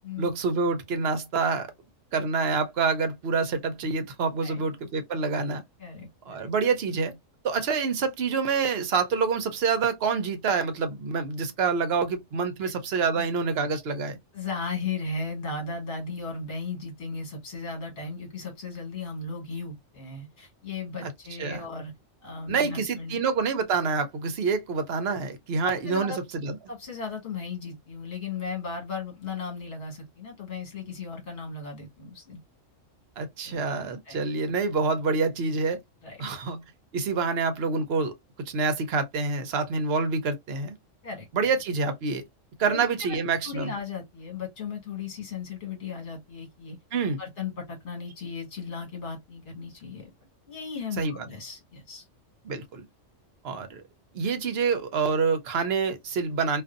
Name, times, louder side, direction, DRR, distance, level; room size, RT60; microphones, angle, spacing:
voice 1, 0.2-1.7 2.1-5.6 6.3-7.2 7.4-14.2 21.0-21.1 21.4-21.7 22.5-26.1 26.4-26.6 33.2-35.8 36.2-36.6 36.9-38.1 38.5-40.7 41.3-42.2 42.6-43.7 46.9-47.2 51.0-51.3 52.4-52.8 53.4-53.8 54.1-56.6, right 5 dB, 60° right, 0.8 m, -27 dB
voice 2, 5.8-6.5 12.6-12.7 13.1-13.3 14.3-21.9 22.2-23.2 25.6-26.2 26.7-32.4 33.4-34.3 36.0-36.3 41.0-41.3 42.7-43.2 43.4-46.8 47.2-50.1 50.5-52.0, left 4 dB, 60° left, 1.6 m, -36 dB
2.6 x 2.5 x 2.4 m
omnidirectional pair, 1.4 m